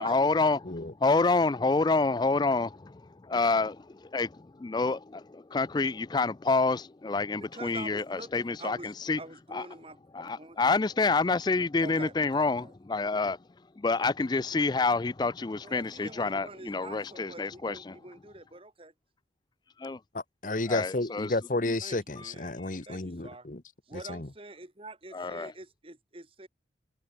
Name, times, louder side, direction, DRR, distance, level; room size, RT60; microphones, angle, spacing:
voice 1, 0.0-0.7 1.0-9.2 9.5-9.6 10.1-13.4 13.8-18.0 19.8-20.0 20.7-21.3 25.1-25.5, left 3 dB, 25° left, 0.4 m, -28 dB
voice 2, 7.4-8.9 9.2-10.6 10.9-11.0 11.8-12.7 15.6-18.9 21.8-22.5 22.9-23.5 23.9-26.5, right 2 dB, 30° right, 2.5 m, -46 dB
voice 3, 20.1-23.6 23.9-24.3, left 2 dB, 45° left, 1.1 m, -32 dB
head